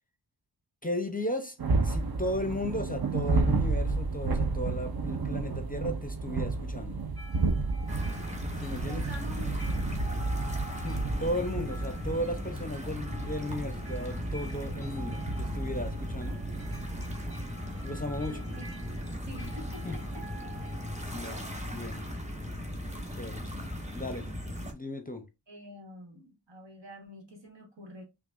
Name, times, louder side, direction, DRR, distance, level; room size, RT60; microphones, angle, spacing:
voice 1, 0.8-1.6 1.8-7.0 8.6-9.0 10.7-16.4 17.8-18.4 19.8-20.0 21.1-22.0 23.2-23.4 23.9-24.3 24.7-25.3, left 1 dB, 20° left, 0.6 m, -35 dB
sound 1, 1.6-21.1, right 3 dB, 55° right, 0.7 m, -33 dB
sound 2, 7.2-22.2, equal, 30° right, 1.8 m, -50 dB
sound 3, 7.9-24.7, left 1 dB, 15° right, 1.0 m, -38 dB
voice 2, 8.8-9.9 18.2-18.9 19.2-20.3 21.1-21.4 23.4-23.6 25.5-28.0, equal, 70° right, 1.5 m, -47 dB
5.7 x 2.4 x 2.5 m
wide cardioid pair, 60°, 44 cm